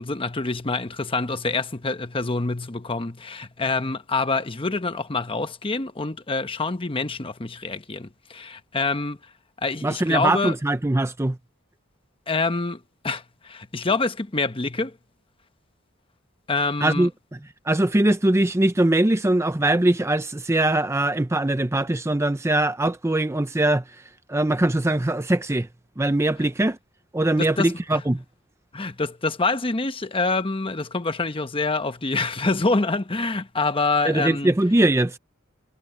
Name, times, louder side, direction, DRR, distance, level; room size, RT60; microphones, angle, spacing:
voice 1, 0.0-9.2 9.6-10.5 12.3-14.9 16.5-17.1 27.4-28.0 28.7-34.5, left 3 dB, 25° left, 1.0 m, -26 dB
voice 2, 9.8-11.4 16.8-17.1 17.7-23.8 24.3-25.7 26.0-26.8 27.1-28.2 34.1-35.2, right 1 dB, 15° right, 0.6 m, -21 dB
head